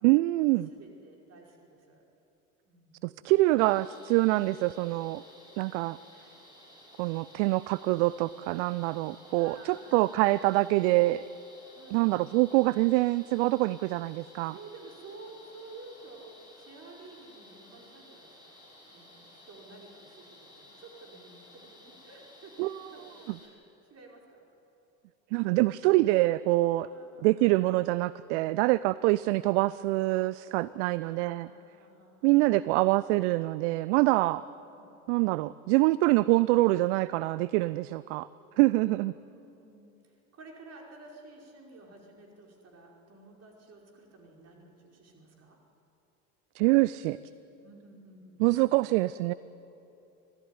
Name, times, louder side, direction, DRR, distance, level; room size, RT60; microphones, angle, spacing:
voice 1, 0.0-0.7 3.0-5.2 5.6-6.0 7.0-11.2 11.9-14.5 22.6-22.7 25.3-26.9 27.2-31.5 32.2-34.4 35.1-38.3 38.6-39.1 46.5-47.2 48.4-49.3, right 20 dB, 55° right, 18 dB, 0.6 m, -25 dB
voice 2, 0.7-2.0 2.6-3.0 9.4-10.6 11.7-12.6 14.5-18.6 18.8-23.6 23.9-24.5 26.8-27.8 30.8-32.4 34.6-35.0 39.1-45.6 47.6-48.7, right 3 dB, 35° right, 0 dB, 5.2 m, -52 dB
sound 1, 3.6-23.5, left 1 dB, 10° right, 7.2 m, -55 dB
25.0 x 16.5 x 9.8 m, 2.9 s
figure-of-eight pair, 65°, 43 cm